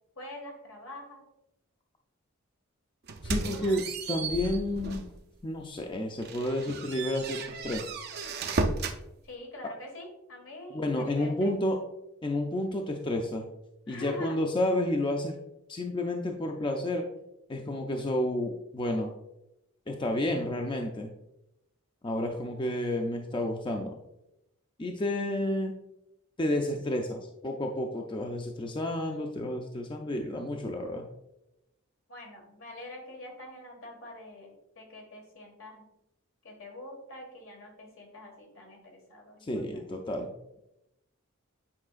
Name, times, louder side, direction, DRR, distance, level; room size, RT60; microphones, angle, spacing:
voice 1, 0.2-1.2 3.2-3.8 9.2-11.5 13.9-14.4 32.1-35.8 36.4-39.8, left 1 dB, 75° left, 1 dB, 1.8 m, -45 dB
sound 1, 3.1-5.2 5.6-5.8 6.2-9.0, right 3 dB, 50° right, 0.5 m, -34 dB
voice 2, 3.2-3.8 4.1-5.1 5.4-7.9 10.7-11.8 12.2-13.4 13.9-15.3 15.7-17.0 17.5-19.1 19.9-21.1 22.0-24.0 24.8-25.7 26.4-31.1 39.4-40.3, left 1 dB, 25° left, 2 dB, 0.5 m, -30 dB
8.5 x 4.7 x 2.5 m, 0.87 s
head